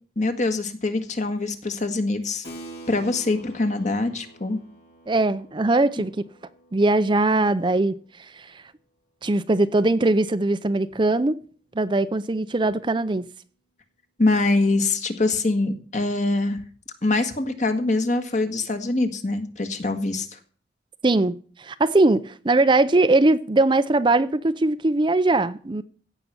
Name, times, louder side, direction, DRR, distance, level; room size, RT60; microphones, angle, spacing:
voice 1, 0.2-2.4 2.9-4.6 14.2-16.6 17.0-20.4, left 2 dB, 45° left, 1.6 m, -24 dB
Keyboard (musical), 2.4-8.5, right 1 dB, 65° left, 2.9 m, -46 dB
voice 2, 5.1-6.2 6.7-7.9 8.3-8.5 9.2-11.4 11.8-13.3 21.0-25.8, right 2 dB, 25° right, 0.5 m, -21 dB
16.0 x 5.8 x 8.1 m
head